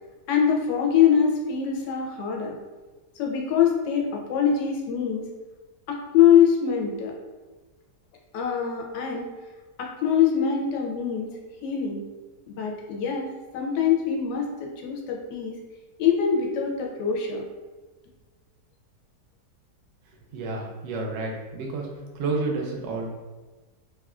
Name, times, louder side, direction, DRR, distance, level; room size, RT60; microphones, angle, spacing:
voice 1, 0.3-2.6 3.2-5.3 5.9-7.1 8.3-9.3 9.8-11.3 11.6-12.0 12.5-13.3 13.5-15.5 16.0-17.4, left 8 dB, 90° left, 0 dB, 1.2 m, -23 dB
voice 2, 20.3-21.9 22.1-23.1, right 3 dB, 65° right, 0 dB, 0.8 m, -30 dB
3.2 x 2.3 x 2.3 m, 1.3 s
omnidirectional pair, 1.8 m